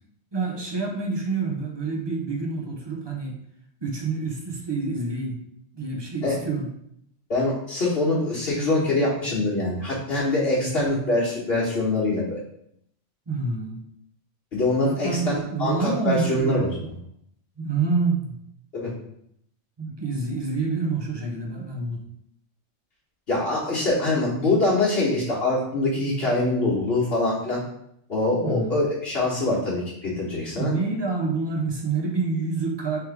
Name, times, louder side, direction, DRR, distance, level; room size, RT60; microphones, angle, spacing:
voice 1, 0.3-3.4 3.8-5.4 5.7-6.7 8.1-8.2 10.6-10.9 13.3-13.8 14.8-16.9 17.6-18.3 19.8-22.0 28.4-28.9 30.6-33.0, right 4 dB, 25° right, 0 dB, 0.6 m, -27 dB
voice 2, 7.3-12.4 14.5-16.7 18.7-18.9 23.3-27.6 28.1-30.7, left 2 dB, 50° left, -7 dB, 1.4 m, -24 dB
3.4 x 3.2 x 4.6 m, 0.71 s
omnidirectional pair, 1.3 m